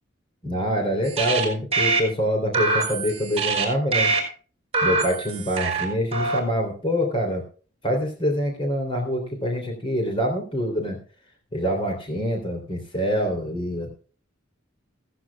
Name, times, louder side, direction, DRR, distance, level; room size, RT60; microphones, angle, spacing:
voice 1, 0.4-4.1 4.8-7.4 7.8-11.0 11.5-13.9, equal, 25° left, 3 dB, 3.3 m, -25 dB
sound 1, 1.0-1.4 1.7-2.0 2.5-3.6 3.9-4.2 4.7-5.8 6.1-6.4, right 3 dB, 30° right, 4.7 m, -24 dB
16.0 x 16.0 x 2.3 m, 0.38 s
head